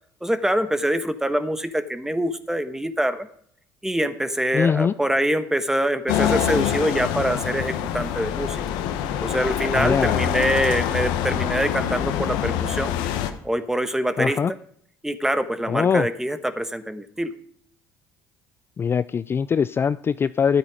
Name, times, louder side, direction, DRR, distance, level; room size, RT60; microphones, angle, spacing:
voice 1, 0.2-3.3 3.8-8.6 9.2-12.9 13.4-14.6 15.0-17.3, right 1 dB, 5° right, 11 dB, 1.3 m, -24 dB
voice 2, 4.5-4.9 9.7-10.2 14.2-14.5 15.7-16.1 18.8-20.6, left 6 dB, 30° left, 15 dB, 0.3 m, -22 dB
sound 1, 6.1-13.3, left 10 dB, 80° left, 1.1 m, -25 dB
12.0 x 8.8 x 5.0 m, 0.65 s
supercardioid pair, 75°, 7 cm